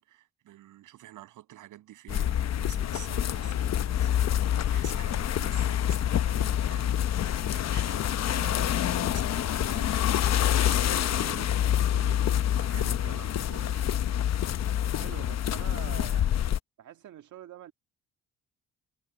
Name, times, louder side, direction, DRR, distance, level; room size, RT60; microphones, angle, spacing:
voice 1, 0.0-14.1, right 14 dB, 85° right, 7.8 m, -49 dB
sound 1, 2.1-16.6, left 10 dB, 60° left, 0.9 m, -27 dB
voice 2, 14.8-16.4 16.8-17.7, right 11 dB, 70° right, 2.0 m, -45 dB
cardioid pair, 90°, 30 cm